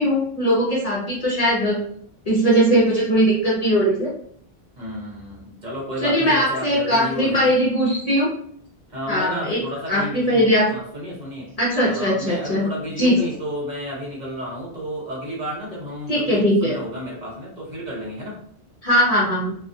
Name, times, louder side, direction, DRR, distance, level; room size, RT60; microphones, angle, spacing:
voice 1, 0.0-1.8 2.3-4.1 6.0-8.3 9.1-9.6 9.9-10.7 11.6-12.7 13.0-13.3 16.1-16.8 18.8-19.6, equal, 40° left, -6 dB, 0.7 m, -19 dB
voice 2, 4.8-7.5 8.9-11.5 11.8-18.4, equal, 45° right, -5 dB, 0.9 m, -32 dB
2.4 x 2.2 x 2.5 m, 0.64 s
omnidirectional pair, 1.1 m